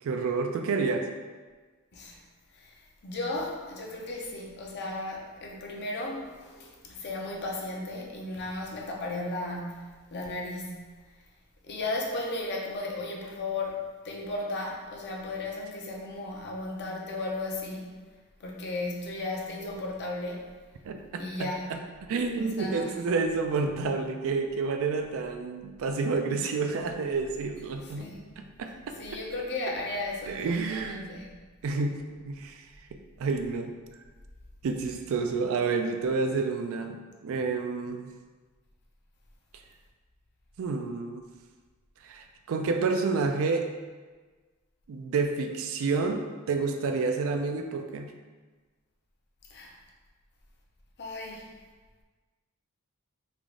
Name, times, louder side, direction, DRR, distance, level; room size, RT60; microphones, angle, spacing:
voice 1, 0.0-1.1 20.8-28.1 28.4-28.9 30.3-31.1 31.6-32.6 33.2-33.7 34.6-38.1 40.6-41.2 42.0-43.7 44.9-48.1, right 4 dB, 65° right, 6 dB, 0.3 m, -29 dB
voice 2, 3.0-10.9 11.6-17.9 18.4-20.4 21.2-21.7 22.3-23.0 27.8-28.2 29.0-31.3 49.5-49.7 51.0-51.5, left 2 dB, 50° left, -1 dB, 0.6 m, -35 dB
3.4 x 2.4 x 3.6 m, 1.4 s
head